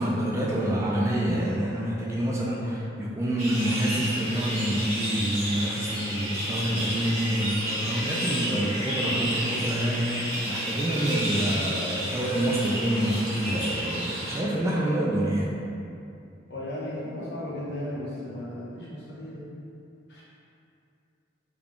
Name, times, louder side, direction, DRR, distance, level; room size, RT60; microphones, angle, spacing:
voice 1, 0.0-15.5, right 1 dB, 15° right, -4 dB, 0.3 m, -27 dB
sound 1, 3.4-14.4, equal, 35° right, 1.1 m, -31 dB
voice 2, 16.5-19.5 20.1-20.2, left 1 dB, 60° left, -7 dB, 0.9 m, -35 dB
3.6 x 2.3 x 3.5 m, 2.5 s
head